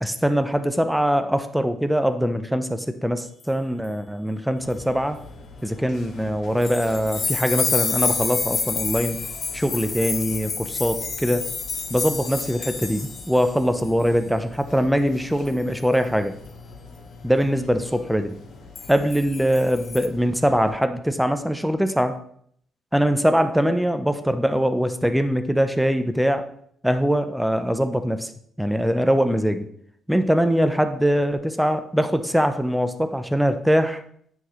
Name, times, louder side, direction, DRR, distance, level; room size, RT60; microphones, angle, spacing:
voice 1, 0.0-5.2 5.6-9.2 9.5-11.5 11.9-16.4 17.2-18.4 18.9-22.2 22.9-26.5 26.8-28.3 28.6-29.7 30.1-34.0, equal, 5° right, 8 dB, 0.5 m, -22 dB
sound 1, 4.6-20.7, left 2 dB, 85° left, 1.8 m, -43 dB
sound 2, 6.6-13.6 13.8-14.1 15.5-15.8 18.8-20.1, left 5 dB, 45° left, 0.7 m, -28 dB
9.8 x 3.8 x 3.1 m, 0.66 s
cardioid pair, 90°, 0 cm